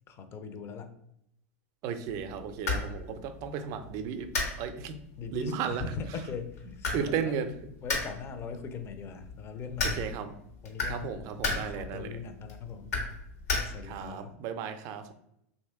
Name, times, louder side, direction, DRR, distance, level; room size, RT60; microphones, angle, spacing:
voice 1, 0.1-0.9 5.2-7.5 7.8-10.0 10.6-13.0 13.6-14.4, left 5 dB, 30° left, 8 dB, 0.4 m, -40 dB
voice 2, 1.8-4.3 4.6-5.0 5.3-5.8 6.9-7.5 9.8-10.3 10.9-12.2 13.8-15.1, right 7 dB, 50° right, 9 dB, 0.4 m, -34 dB
sound 1, 2.1-14.1, left 3 dB, 90° left, 1.3 m, -36 dB
3.0 x 2.6 x 3.5 m, 0.77 s
hypercardioid pair, 105°, 8 cm